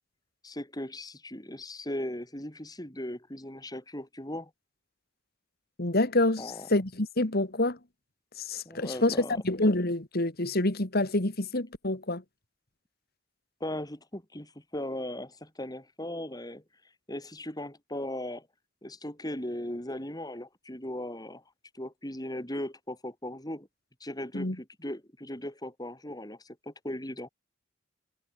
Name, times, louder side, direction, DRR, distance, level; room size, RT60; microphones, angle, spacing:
voice 1, 0.4-4.5 6.4-6.7 8.6-9.4 13.6-16.6 17.1-18.5 18.8-21.4 21.7-23.7 24.0-27.3, left 1 dB, 20° left, 6.8 m, -38 dB
voice 2, 5.8-7.8 8.4-12.2 24.3-24.6, left 2 dB, 50° left, 2.3 m, -27 dB
head